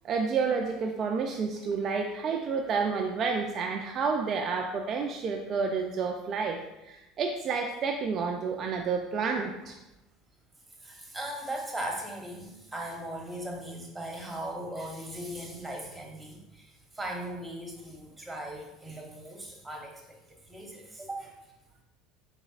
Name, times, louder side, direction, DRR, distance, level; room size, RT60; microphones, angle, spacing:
voice 1, 0.0-9.8, right 5 dB, 45° right, 2 dB, 0.3 m, -30 dB
voice 2, 10.8-20.2 20.5-21.3, right 1 dB, 10° right, 1 dB, 1.0 m, -38 dB
4.0 x 3.3 x 2.4 m, 0.95 s
hypercardioid pair, 75°, 0 cm